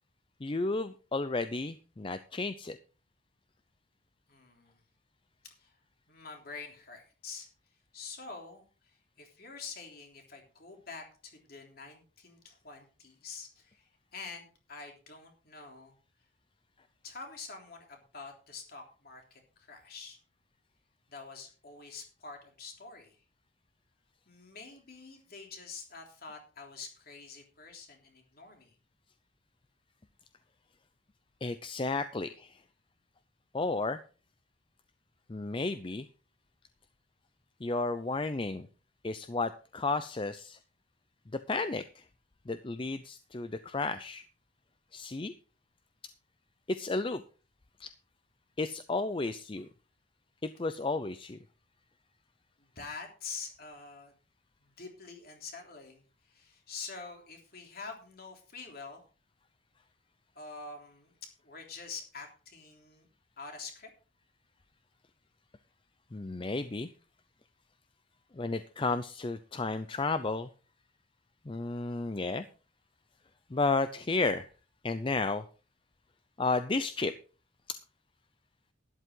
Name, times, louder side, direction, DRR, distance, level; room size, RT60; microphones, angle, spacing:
voice 1, 0.4-2.8 31.4-32.6 33.5-34.0 35.3-36.1 37.6-38.7 39.0-40.6 41.5-42.0 42.5-44.2 44.9-45.3 46.7-47.2 47.8-47.9 48.6-49.7 50.4-51.4 66.1-66.9 68.3-70.5 71.5-72.4 73.5-74.5 74.8-75.4 76.4-77.1 77.7-77.8, left 3 dB, 25° left, 11 dB, 0.5 m, -32 dB
voice 2, 4.3-4.8 5.4-5.8 6.1-7.5 7.9-15.9 17.0-20.2 21.1-23.2 24.3-28.7 52.6-54.1 54.6-59.0 60.4-61.1 61.4-63.1 63.4-63.9, left 4 dB, 50° left, 2 dB, 3.4 m, -46 dB
12.5 x 11.0 x 3.8 m, 0.36 s
head